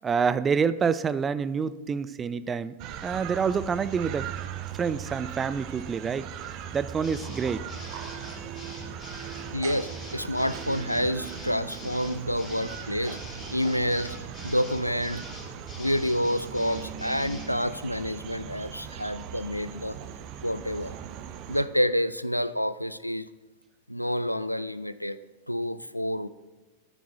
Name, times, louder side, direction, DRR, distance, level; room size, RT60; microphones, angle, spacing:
voice 1, 0.0-2.8 3.0-4.3 4.8-6.3 6.7-7.7, right 6 dB, 20° right, 15 dB, 0.4 m, -27 dB
sound 1, 2.8-21.6, right 9 dB, 40° right, 0.7 m, -39 dB
sound 2, 7.0-17.5, left 3 dB, 20° left, 3.4 m, -45 dB
voice 2, 9.5-15.2 15.8-20.0 20.4-21.0 21.5-23.3 23.9-25.2 25.5-26.3, equal, 90° left, 15 dB, 0.3 m, -28 dB
13.5 x 6.1 x 3.6 m, 1.2 s
figure-of-eight pair, 90°, 0 cm